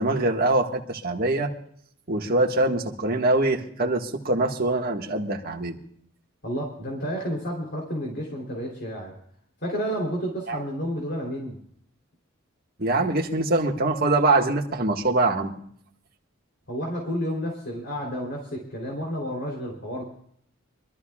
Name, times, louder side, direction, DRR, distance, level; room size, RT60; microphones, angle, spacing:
voice 1, 0.0-1.5 2.1-5.8 10.5-10.6 12.8-15.5, right 2 dB, 50° right, 2 dB, 1.6 m, -23 dB
voice 2, 6.4-9.1 9.6-11.6 16.7-20.0, equal, 55° left, -2 dB, 3.4 m, -31 dB
25.5 x 13.5 x 2.4 m, 0.64 s
head